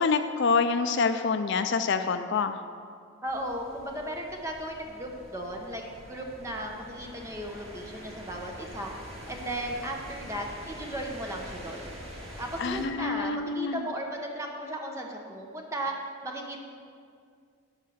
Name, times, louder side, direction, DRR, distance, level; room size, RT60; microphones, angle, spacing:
voice 1, 0.0-2.6 12.6-13.8, left 4 dB, 55° left, 9 dB, 0.4 m, -26 dB
voice 2, 3.2-8.9 9.3-11.8 12.4-16.0 16.2-16.6, right 1 dB, 15° right, 0 dB, 1.0 m, -36 dB
sound 1, 3.3-12.9, equal, 60° right, 2.2 m, -45 dB
11.5 x 5.7 x 7.0 m, 2.3 s
head